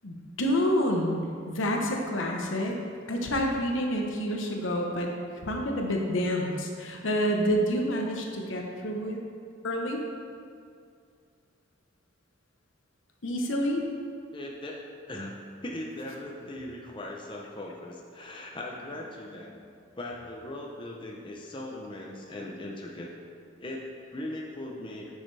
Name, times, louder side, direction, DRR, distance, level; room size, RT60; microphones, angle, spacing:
voice 1, 0.0-2.7 3.1-5.1 5.4-9.2 9.6-10.0 13.2-13.8, equal, 70° left, 1 dB, 1.0 m, -28 dB
voice 2, 14.3-14.8 15.1-15.3 15.6-19.5 20.0-23.1 23.6-25.1, left 1 dB, 25° left, -1 dB, 0.7 m, -39 dB
9.5 x 6.5 x 3.3 m, 2.3 s
head